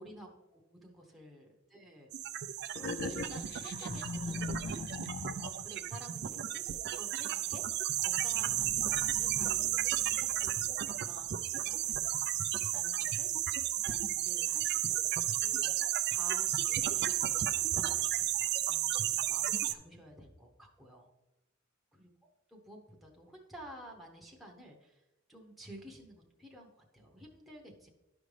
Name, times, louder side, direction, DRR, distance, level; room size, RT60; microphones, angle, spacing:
voice 1, 0.0-2.1 2.5-5.0 5.2-7.7 8.0-12.3 12.7-13.3 13.8-15.0 15.4-21.1 21.9-22.1 22.5-25.0 25.3-27.9, equal, ahead, 0 dB, 0.9 m, -52 dB
sound 1, 2.1-19.7, right 12 dB, 55° right, 0.4 m, -33 dB
sound 2, 2.7-5.8, left 4 dB, 55° left, 0.4 m, -40 dB
sound 3, 8.2-13.8, right 1 dB, 35° left, 1.7 m, -52 dB
11.5 x 5.1 x 3.3 m, 1.0 s
head